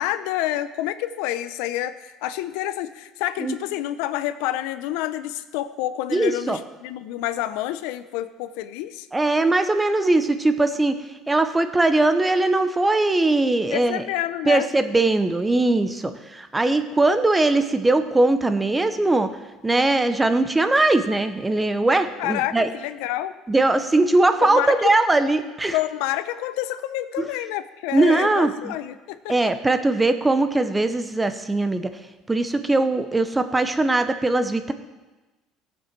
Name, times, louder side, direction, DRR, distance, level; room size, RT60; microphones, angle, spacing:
voice 1, 0.0-9.1 13.7-14.7 22.2-23.3 24.4-24.9 25.7-29.3, left 14 dB, 85° left, 12 dB, 0.6 m, -28 dB
voice 2, 6.1-6.6 9.1-10.9 11.3-14.0 14.5-19.3 19.6-22.7 23.5-25.8 27.2-27.3 27.9-28.8 29.3-31.9 32.3-34.7, right 2 dB, 10° right, 10 dB, 0.7 m, -20 dB
16.5 x 7.6 x 4.5 m, 1.1 s
cardioid pair, 130°, 0 cm